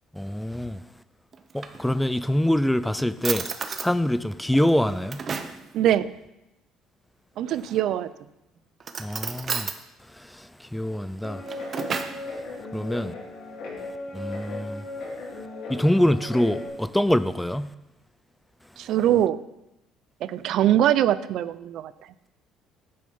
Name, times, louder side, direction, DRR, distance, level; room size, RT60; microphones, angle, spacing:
voice 1, 0.1-0.8 1.5-3.5 3.8-5.2 9.0-9.7 10.3-11.4 12.7-13.1 14.1-14.8 15.7-17.7, left 1 dB, 5° left, 0.4 m, -24 dB
Drawer open or close, 1.3-2.3 2.8-2.9 3.2-3.9 4.5-5.6 7.5-8.0 8.8-9.8 11.2-12.2, right 5 dB, 35° right, 0.7 m, -33 dB
voice 2, 5.7-6.1 7.4-8.1 18.8-19.4 20.2-21.9, right 11 dB, 65° right, 0.4 m, -22 dB
Guitar, 11.2-16.7, left 2 dB, 70° left, 2.7 m, -37 dB
8.6 x 6.6 x 5.4 m
cardioid pair, 115°, 0 cm